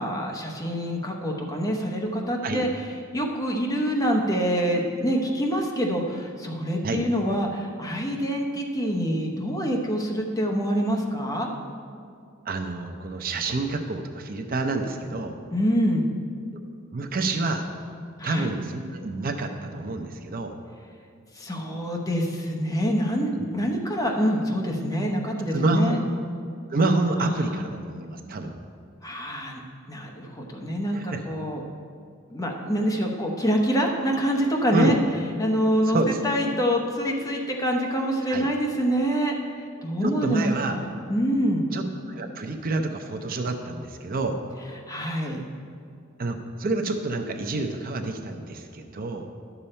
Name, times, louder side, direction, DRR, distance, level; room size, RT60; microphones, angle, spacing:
voice 1, 0.0-2.7 3.1-11.5 15.5-16.0 18.2-18.5 21.3-26.0 27.2-27.6 29.0-29.6 29.9-31.6 32.3-35.0 35.4-36.0 36.2-39.3 39.8-41.7 44.9-45.4, equal, 15° left, 0 dB, 0.9 m, -26 dB
voice 2, 12.5-15.4 16.9-17.7 18.2-20.5 23.3-23.5 25.5-26.0 26.7-28.5 30.9-31.2 34.7-35.0 35.8-36.2 38.3-38.5 40.0-40.8 41.7-44.4 46.2-49.3, right 2 dB, 45° right, 5 dB, 0.6 m, -28 dB
11.0 x 7.0 x 4.3 m, 2.3 s
head